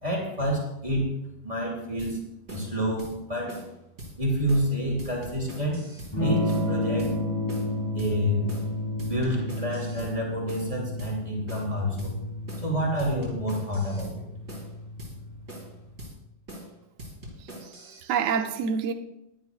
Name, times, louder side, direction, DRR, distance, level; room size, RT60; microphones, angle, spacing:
voice 1, 0.0-1.1 1.4-2.2 2.5-3.6 4.2-5.8 6.2-7.1 7.9-8.4 9.0-12.1 12.6-14.3, equal, 20° right, 3.0 m, -28 dB
sound 1, 2.0-2.1 2.5-2.7 3.0-3.1 3.5-3.7 4.0-4.1 4.5-4.7 5.0-6.1 6.5-6.7 7.0-7.1 7.5-7.7 8.0-8.1 8.5-8.7 9.0-10.1 10.5-10.7 11.0-11.1 11.5-11.7 12.0-12.1 12.5-12.7 13.0-14.1 14.5-14.7 15.0-15.1 15.5-15.7 16.0-16.1 16.5-16.7 17.0-18.0, right 1 dB, 35° right, 5.6 m, -42 dB
Electric guitar / Strum, 6.1-15.9, left 1 dB, 15° left, 4.5 m, -31 dB
voice 2, 17.4-18.9, right 6 dB, 60° right, 0.8 m, -28 dB
18.5 x 11.5 x 2.4 m
omnidirectional pair, 2.1 m